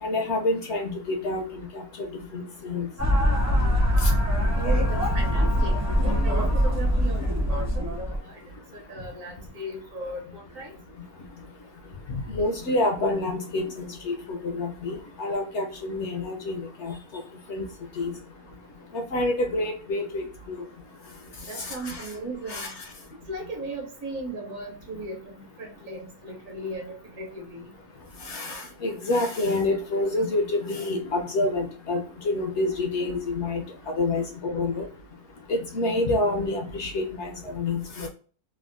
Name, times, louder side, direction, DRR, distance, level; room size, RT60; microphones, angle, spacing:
voice 1, 0.0-2.1 2.3-2.9 4.0-4.1 12.1-16.9 17.5-17.6 18.0-18.1 18.9-20.6 21.6-22.0 22.5-22.7 28.2-33.6 34.0-34.8 35.5-38.1, left 2 dB, 70° left, 0.7 m, -28 dB
sound 1, 3.0-8.2, equal, 20° right, 0.4 m, -23 dB
voice 2, 4.6-8.4 8.7-10.8 21.5-22.7 23.3-27.7, right 2 dB, 65° right, 1.1 m, -37 dB
3.4 x 2.0 x 2.4 m
omnidirectional pair, 1.6 m